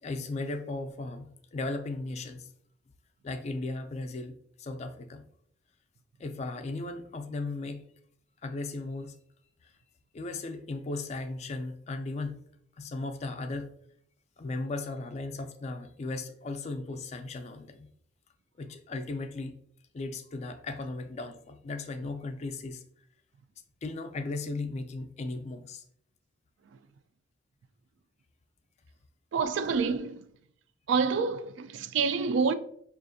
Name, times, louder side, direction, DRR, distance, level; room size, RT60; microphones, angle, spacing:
voice 1, 0.0-2.5 3.2-5.2 6.2-7.9 8.4-9.2 9.6-9.7 10.1-12.5 12.8-13.7 14.4-17.9 18.6-19.6 19.9-22.8 23.8-25.8, left 2 dB, 35° left, 0.3 m, -36 dB
voice 2, 29.3-30.2 30.9-32.5, right 5 dB, 70° right, 0.3 m, -27 dB
5.4 x 2.4 x 2.6 m
head